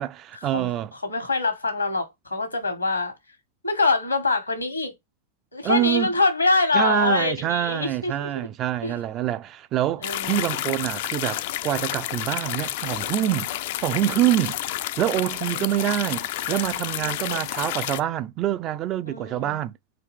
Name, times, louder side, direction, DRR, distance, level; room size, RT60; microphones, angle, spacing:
voice 1, 0.0-0.9 5.6-6.1 6.7-13.5 13.8-14.6 15.0-19.7, right 12 dB, 35° right, 0.3 m, -26 dB
voice 2, 1.0-3.1 3.6-4.9 5.5-8.5 8.8-9.0 10.0-10.4 13.5-13.6 15.4-15.8 17.0-17.4 19.1-19.6, left 3 dB, 85° left, 1.2 m, -25 dB
sound 1, 10.0-18.0, left 14 dB, 50° left, 0.3 m, -30 dB
4.0 x 2.5 x 3.3 m
figure-of-eight pair, 90°, 0 cm